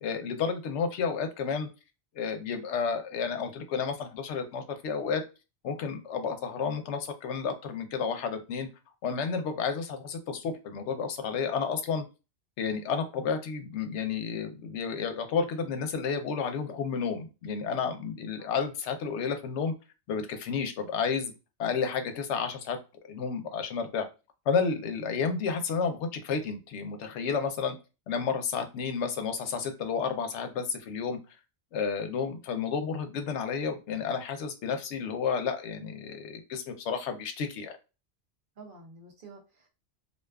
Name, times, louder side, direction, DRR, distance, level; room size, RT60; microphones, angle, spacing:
voice 1, 0.0-1.7 2.2-5.2 5.6-8.7 9.0-12.0 12.6-19.7 20.1-21.3 21.6-22.8 23.0-24.1 24.5-27.7 28.1-31.2 31.7-37.8, left 6 dB, 80° left, 6 dB, 0.9 m, -31 dB
voice 2, 38.6-39.7, right 3 dB, 55° right, 1 dB, 0.8 m, -50 dB
2.5 x 2.3 x 2.2 m, 0.29 s
omnidirectional pair, 1.2 m